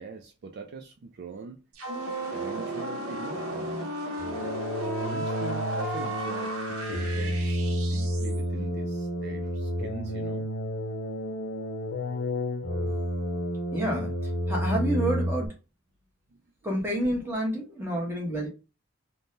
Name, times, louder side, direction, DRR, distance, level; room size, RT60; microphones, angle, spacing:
voice 1, 0.0-1.6 1.9-3.8 4.8-10.5 16.9-17.0 17.9-18.3, right 4 dB, 50° right, 0.3 m, -42 dB
sound 1, 1.7-8.4, right 1 dB, 70° right, 0.8 m, -34 dB
sound 2, 4.2-15.5, equal, 60° left, 0.7 m, -30 dB
voice 2, 13.7-15.5 16.6-18.5, right 1 dB, 10° right, 0.9 m, -29 dB
3.5 x 2.1 x 2.6 m
head